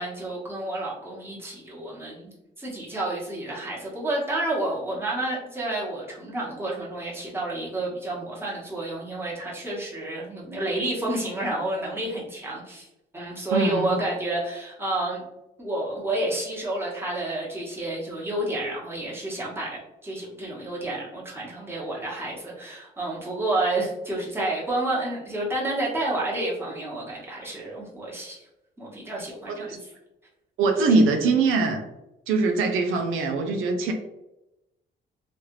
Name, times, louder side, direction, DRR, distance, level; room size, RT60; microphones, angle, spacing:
voice 1, 0.0-12.9 13.1-15.2 15.6-28.4 28.8-29.8, right 2 dB, 10° right, -5 dB, 1.2 m, -30 dB
voice 2, 13.5-14.0 29.5-29.7 30.6-31.8 32.3-33.9, right 3 dB, 85° right, 4 dB, 0.5 m, -22 dB
3.1 x 2.4 x 3.0 m, 0.93 s
cardioid pair, 90°, 20 cm